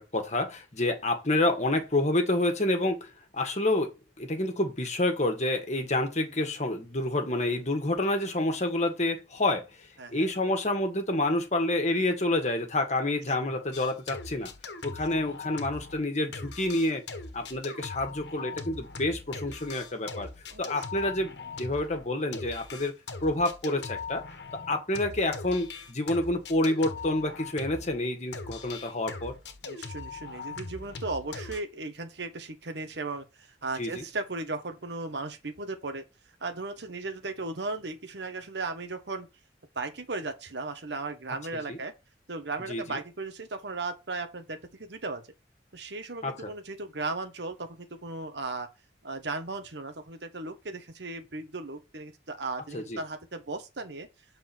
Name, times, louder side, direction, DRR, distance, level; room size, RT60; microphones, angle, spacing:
voice 1, 0.0-9.6 10.1-14.5 14.8-17.0 17.3-20.3 20.6-22.9 23.2-24.2 24.7-29.3 33.8-34.0 41.7-41.8 42.7-43.0 46.2-46.5 52.7-53.0, left 1 dB, 40° left, 1.7 m, -28 dB
voice 2, 10.0-10.3 13.3-13.5 20.5-20.9 29.6-36.0 36.4-39.3 39.7-41.9 42.3-45.2 45.7-48.7 49.0-54.1, right 3 dB, 75° right, 1.2 m, -36 dB
sound 1, 13.7-16.1 16.3-28.0 28.3-31.6, left 4 dB, 75° left, 1.4 m, -41 dB
7.8 x 4.3 x 4.4 m
head